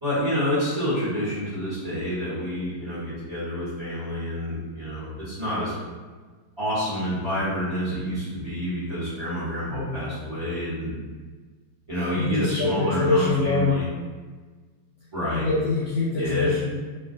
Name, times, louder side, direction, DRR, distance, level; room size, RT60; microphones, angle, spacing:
voice 1, 0.0-5.7 6.6-11.0 11.9-13.9 15.1-15.5 16.2-16.5, equal, 25° right, -11 dB, 0.6 m, -28 dB
voice 2, 9.7-10.2 12.2-13.8 15.3-16.7, left 3 dB, 70° left, -8 dB, 1.0 m, -24 dB
3.7 x 2.3 x 2.5 m, 1.4 s
omnidirectional pair, 2.4 m